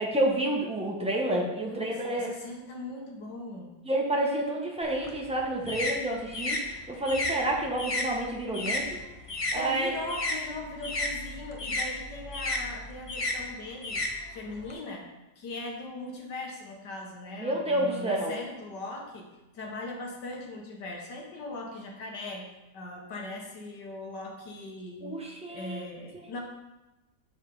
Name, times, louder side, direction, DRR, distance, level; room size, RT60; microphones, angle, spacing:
voice 1, 0.0-2.3 3.8-8.9 9.5-9.9 17.4-18.4 25.0-25.8 26.1-26.3, right 1 dB, 5° right, -2 dB, 0.8 m, -29 dB
voice 2, 1.6-3.7 9.5-14.0 14.3-15.0 15.4-19.3 19.5-22.5 22.7-25.1 25.5-26.4, left 2 dB, 85° left, 0 dB, 1.9 m, -39 dB
sound 1, 4.8-9.6 9.9-14.7, left 2 dB, 45° left, 0.4 m, -33 dB
7.1 x 4.5 x 5.4 m, 1.0 s
omnidirectional pair, 1.8 m